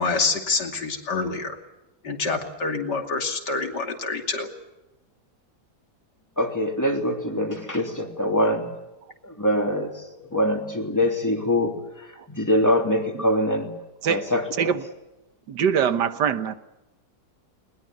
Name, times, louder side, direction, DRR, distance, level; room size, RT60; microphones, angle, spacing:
voice 1, 0.0-1.6 2.0-4.5, left 4 dB, 75° left, 4 dB, 3.3 m, -26 dB
voice 2, 6.4-8.7 9.2-13.7 14.1-14.7, left 1 dB, 10° left, 3 dB, 3.0 m, -24 dB
voice 3, 15.5-16.5, right 8 dB, 75° right, 11 dB, 1.7 m, -23 dB
21.0 x 20.5 x 9.3 m, 1.0 s
omnidirectional pair, 1.9 m